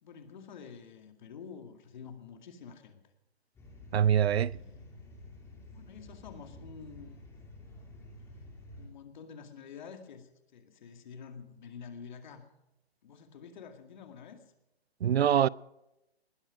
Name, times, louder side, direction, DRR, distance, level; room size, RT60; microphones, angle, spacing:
voice 1, 0.0-3.1 4.4-4.9 5.7-7.2 8.8-12.5 13.0-14.4, left 6 dB, 45° left, 2.2 m, -48 dB
sound 1, 3.6-8.9, left 1 dB, 10° left, 2.8 m, -50 dB
voice 2, 3.9-4.6 15.0-15.5, right 9 dB, 75° right, 0.5 m, -24 dB
20.0 x 12.5 x 5.1 m
hypercardioid pair, 155°, 32 cm